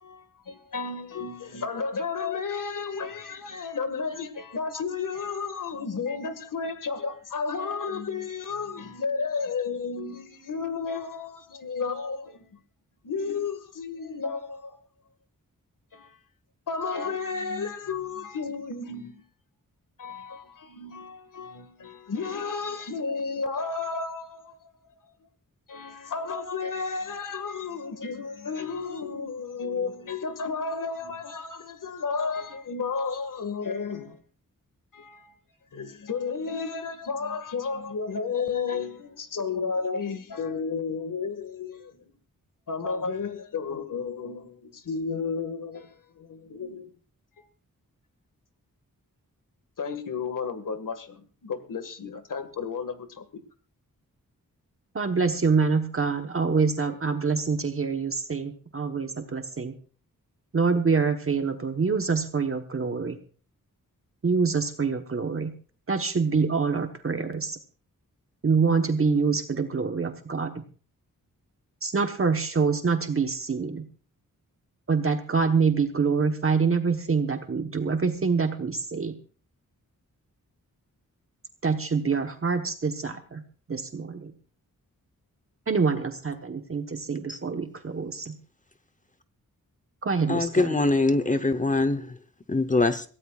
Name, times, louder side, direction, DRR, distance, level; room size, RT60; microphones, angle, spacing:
voice 1, 0.0-12.5 13.0-14.8 15.9-16.2 16.7-19.2 20.0-24.6 25.7-34.2 34.9-35.3 35.7-42.0 42.7-46.9 47.4-47.5 49.8-53.4, left 5 dB, 65° left, 1.9 m, -32 dB
voice 2, 54.9-59.7 60.5-63.2 64.2-65.5 65.9-67.6 68.4-70.5 71.8-73.8 74.9-79.2 81.6-83.4 83.7-84.3 85.7-88.4 90.0-90.8, right 5 dB, 40° right, 1.2 m, -26 dB
voice 3, 90.3-92.0 92.5-93.0, left 2 dB, 25° left, 0.9 m, -23 dB
22.5 x 17.0 x 2.4 m
wide cardioid pair, 145°, 34 cm